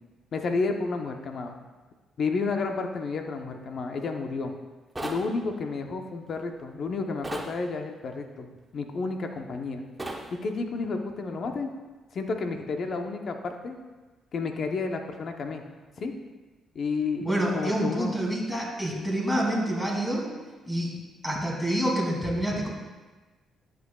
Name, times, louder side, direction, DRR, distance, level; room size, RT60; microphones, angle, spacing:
voice 1, 0.3-1.5 2.2-4.5 5.0-8.5 8.7-9.8 10.3-11.7 12.1-13.8 14.3-15.6 16.0-16.1 16.7-18.1, left 4 dB, 55° left, 4 dB, 0.9 m, -31 dB
sound 1, 5.0-5.3 7.2-7.5 10.0-10.3, right 1 dB, 15° right, 1.0 m, -34 dB
voice 2, 17.2-20.3 20.7-21.0 21.2-22.7, right 1 dB, 10° left, -3 dB, 2.7 m, -27 dB
11.0 x 7.7 x 2.4 m, 1.3 s
cardioid pair, 90°, 0 cm